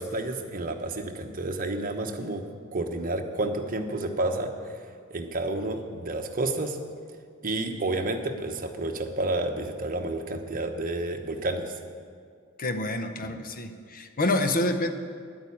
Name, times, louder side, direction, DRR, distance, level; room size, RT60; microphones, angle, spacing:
voice 1, 0.0-2.4 2.7-4.8 5.1-6.8 7.4-11.7, right 2 dB, 40° right, 4 dB, 1.0 m, -30 dB
voice 2, 12.6-14.9, left 2 dB, 40° left, 8 dB, 0.7 m, -27 dB
10.5 x 8.9 x 8.6 m, 2.1 s
head